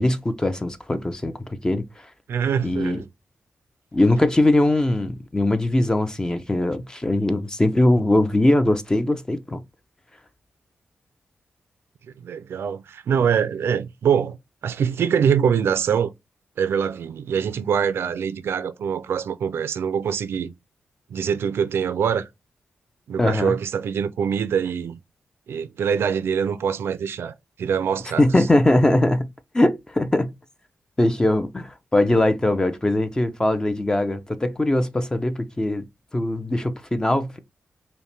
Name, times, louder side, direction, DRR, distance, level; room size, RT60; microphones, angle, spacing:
voice 1, 0.0-1.8 2.6-3.0 3.9-9.6 23.2-23.5 28.2-29.3 29.5-30.3 31.0-35.9 36.1-37.4, left 1 dB, 15° left, 0.5 m, -21 dB
voice 2, 2.3-3.0 12.2-14.4 14.6-16.1 16.6-20.5 21.1-22.3 23.1-25.0 25.5-28.2, right 7 dB, 85° right, 0.4 m, -24 dB
5.3 x 2.2 x 3.2 m
cardioid pair, 90°, 4 cm